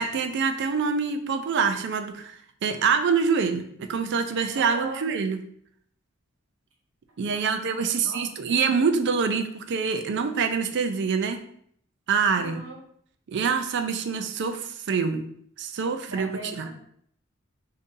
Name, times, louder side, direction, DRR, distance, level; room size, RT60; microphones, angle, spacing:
voice 1, 0.0-5.4 7.2-11.4 12.1-12.6 13.3-15.2 15.6-16.3 16.6-16.7, right 5 dB, 60° right, 7 dB, 0.4 m, -25 dB
voice 2, 4.5-5.0 7.3-7.4 7.7-8.2 12.3-12.8 16.1-16.7, right 2 dB, 80° right, -3 dB, 1.1 m, -38 dB
2.7 x 2.6 x 3.7 m, 0.64 s
head